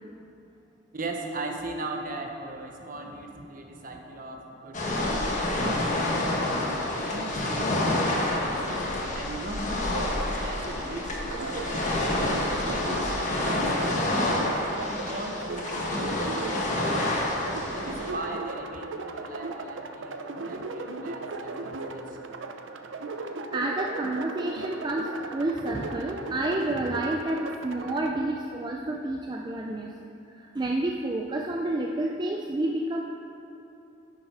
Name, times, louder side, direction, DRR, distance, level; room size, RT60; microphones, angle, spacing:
voice 1, 0.9-9.7 10.0-12.2 12.5-14.4 14.7-22.2, right 2 dB, 45° right, 2 dB, 0.9 m, -39 dB
sound 1, 4.7-18.1, left 1 dB, 40° left, 1.2 m, -28 dB
sound 2, 9.8-28.1, right 3 dB, 80° right, 0.6 m, -37 dB
voice 2, 23.5-29.9 30.3-33.0, right 2 dB, 20° right, 1 dB, 0.4 m, -29 dB
9.8 x 7.6 x 4.8 m, 2.9 s
head